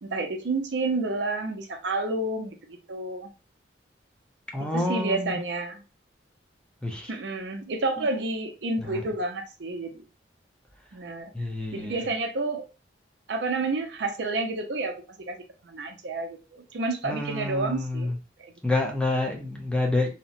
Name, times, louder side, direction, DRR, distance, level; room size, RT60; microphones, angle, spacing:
voice 1, 0.0-3.3 4.7-5.8 7.1-10.0 10.9-11.3 11.7-12.7 13.3-15.0 15.3-15.4 15.6-18.1 18.4-18.5, right 3 dB, 75° right, 5 dB, 0.6 m, -30 dB
voice 2, 4.5-5.4 6.8-7.1 8.0-8.1 8.8-9.0 11.3-12.0 17.0-18.1 18.6-20.1, left 2 dB, 5° left, 1 dB, 0.5 m, -28 dB
2.8 x 2.1 x 2.5 m, 0.30 s
head